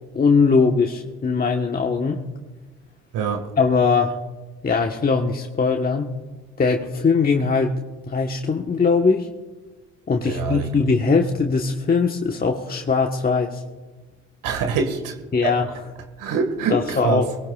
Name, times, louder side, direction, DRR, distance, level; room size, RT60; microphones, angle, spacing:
voice 1, 0.1-2.2 3.6-4.2 4.6-6.1 6.6-7.7 8.1-9.3 10.1-13.6 15.3-15.7 16.7-17.3, left 4 dB, 25° left, 2 dB, 1.4 m, -20 dB
voice 2, 3.1-3.5 10.3-10.7 14.4-15.2 15.4-15.5 16.2-17.2, right 5 dB, 65° right, 6 dB, 2.0 m, -24 dB
23.5 x 19.0 x 2.4 m, 1.2 s
hypercardioid pair, 60°, 35 cm